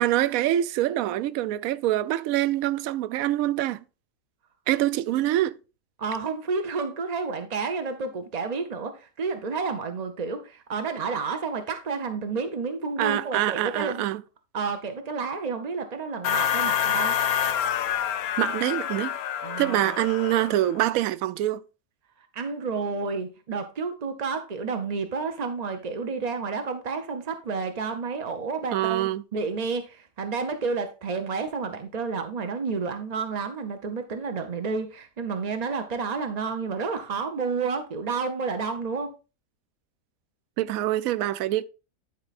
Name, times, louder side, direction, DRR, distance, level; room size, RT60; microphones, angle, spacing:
voice 1, 0.0-3.8 4.7-5.6 13.0-14.2 18.4-19.1 19.6-21.6 28.7-29.2 40.6-41.6, right 14 dB, 70° right, 0.9 m, -25 dB
voice 2, 6.0-14.1 14.5-17.2 19.4-20.0 22.3-39.1, right 4 dB, 45° right, 0.5 m, -30 dB
sound 1, 16.2-20.8, left 9 dB, 70° left, 1.0 m, -27 dB
10.5 x 4.4 x 4.1 m
omnidirectional pair, 1.7 m